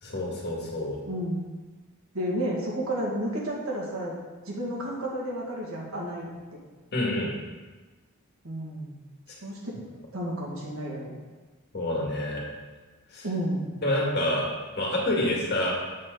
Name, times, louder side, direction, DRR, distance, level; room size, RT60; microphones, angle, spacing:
voice 1, 0.0-1.0 6.9-7.3 11.7-12.4 13.1-13.3 13.8-14.5 14.8-15.7, left 1 dB, 50° left, -3 dB, 2.0 m, -27 dB
voice 2, 1.0-1.4 2.1-4.2 4.5-6.6 8.4-8.9 9.4-9.8 10.1-11.1 13.2-13.7, right 1 dB, 70° right, -4 dB, 2.1 m, -31 dB
7.7 x 7.5 x 4.0 m, 1.3 s
head